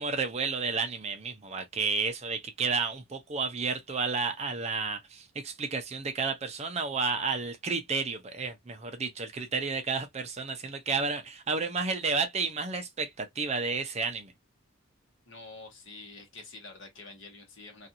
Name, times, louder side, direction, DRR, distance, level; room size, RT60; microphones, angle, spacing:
voice 1, 0.0-14.3, right 4 dB, 30° right, 0.5 m, -31 dB
voice 2, 15.3-17.9, left 3 dB, 65° left, 1.1 m, -47 dB
2.5 x 2.4 x 2.7 m
head